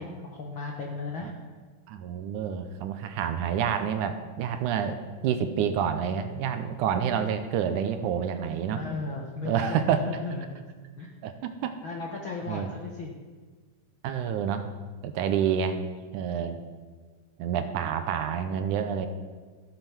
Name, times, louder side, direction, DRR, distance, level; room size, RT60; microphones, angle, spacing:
voice 1, 0.0-1.3 4.8-5.0 8.7-10.5 11.0-11.1 11.8-13.1 14.1-14.3, left 3 dB, 70° left, 0 dB, 1.2 m, -36 dB
voice 2, 1.9-8.8 9.5-10.0 11.2-11.8 12.5-12.7 14.0-14.7 15.0-15.8 16.1-16.7 17.4-19.1, right 8 dB, 80° right, 9 dB, 2.0 m, -28 dB
14.5 x 7.9 x 5.9 m, 1.5 s
omnidirectional pair, 3.8 m